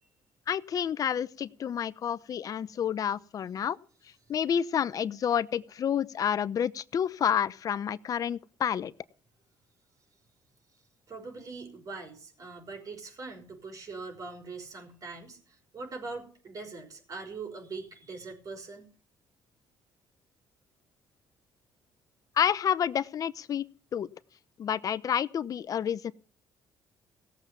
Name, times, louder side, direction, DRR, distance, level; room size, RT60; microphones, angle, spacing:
voice 1, 0.5-3.8 4.3-8.9 22.4-23.6 23.9-24.1 24.6-26.1, left 8 dB, 50° left, 17 dB, 0.7 m, -29 dB
voice 2, 11.1-18.9, right 4 dB, 50° right, 4 dB, 5.7 m, -42 dB
17.0 x 7.4 x 6.8 m, 0.43 s
cardioid pair, 85°, 8 cm